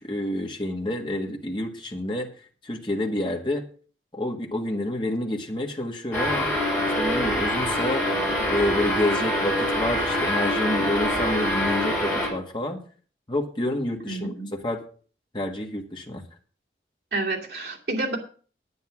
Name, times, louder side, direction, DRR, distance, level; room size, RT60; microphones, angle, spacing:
voice 1, 0.0-2.3 2.6-3.6 4.1-6.5 7.0-8.1 8.5-12.8 13.3-14.3 14.6-14.8 15.3-16.2, left 1 dB, 25° left, 2 dB, 1.6 m, -28 dB
sound 1, 6.1-12.3, equal, 10° left, 5.4 m, -25 dB
voice 2, 14.0-14.5 17.1-18.2, right 2 dB, 65° right, 0 dB, 2.5 m, -29 dB
10.0 x 9.2 x 6.0 m, 0.41 s
head